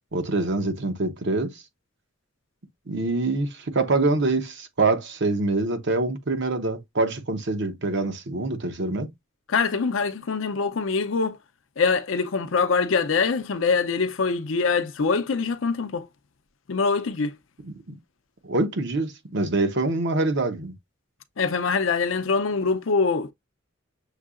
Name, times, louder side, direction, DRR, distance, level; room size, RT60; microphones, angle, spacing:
voice 1, 0.1-1.5 2.9-9.1 17.6-17.9 18.4-20.7, right 3 dB, 60° right, 0.8 m, -25 dB
voice 2, 9.5-11.4 11.8-16.1 16.7-17.3 21.4-23.3, left 4 dB, 75° left, 0.6 m, -24 dB
6.5 x 2.7 x 2.4 m
head